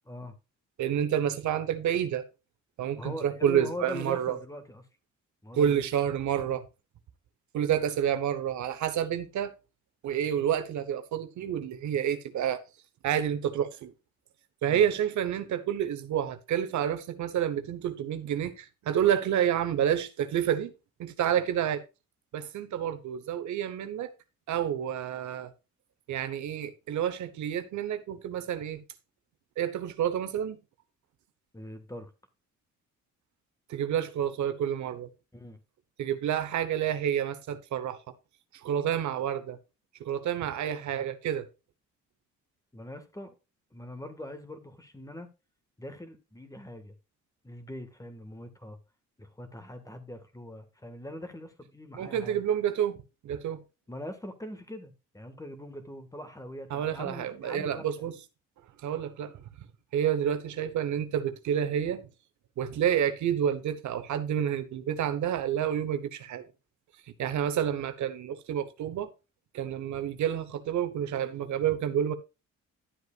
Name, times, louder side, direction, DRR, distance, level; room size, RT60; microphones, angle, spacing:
voice 1, 0.8-2.2 2.8-4.4 5.5-6.7 7.5-9.5 10.0-12.6 13.0-13.9 14.6-20.7 21.0-21.8 22.3-24.1 24.5-25.5 26.1-28.8 29.6-30.6 33.7-35.1 36.0-38.0 38.6-39.6 40.0-41.5 51.9-53.0 53.2-53.6 56.7-58.1 58.8-59.4 59.9-62.0 62.6-66.4 67.2-69.1 69.5-72.1, right 9 dB, 70° right, 1.0 m, -29 dB
voice 2, 3.0-4.9 5.4-5.8 14.6-14.8 31.5-32.1 35.3-35.6 42.7-43.3 43.7-45.3 45.8-46.9 47.4-48.8 49.2-52.4 53.9-57.9, left 1 dB, 10° left, 1.6 m, -42 dB
11.5 x 8.0 x 2.4 m
cardioid pair, 90°, 30 cm